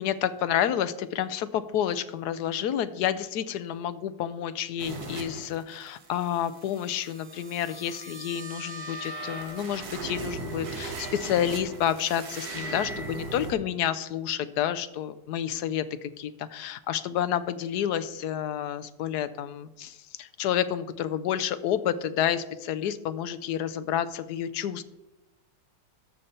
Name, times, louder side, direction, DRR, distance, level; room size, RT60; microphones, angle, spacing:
voice 1, 0.0-24.8, left 10 dB, 70° left, 13 dB, 1.1 m, -29 dB
sound 1, 4.8-13.5, right 3 dB, 60° right, 1.9 m, -38 dB
12.0 x 6.7 x 4.3 m, 1.0 s
omnidirectional pair, 2.0 m